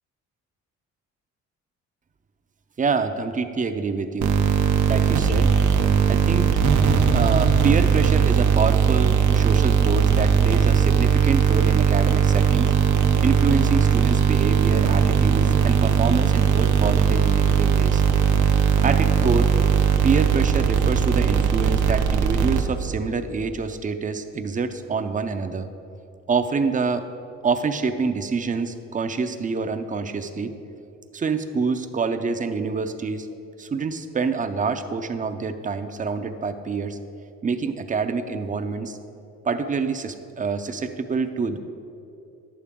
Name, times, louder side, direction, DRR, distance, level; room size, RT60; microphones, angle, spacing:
voice 1, 2.8-4.3 4.9-5.5 6.1-6.5 7.1-12.7 13.2-18.0 18.8-19.5 20.0-25.7 26.3-27.1 27.4-30.5 31.1-33.3 33.6-37.0 37.4-39.0 39.4-41.6, right 4 dB, 25° right, 8 dB, 0.6 m, -26 dB
sound 1, 4.2-23.0, right 7 dB, 70° right, 0.7 m, -19 dB
11.0 x 8.4 x 3.6 m, 2.7 s
cardioid pair, 90°, 30 cm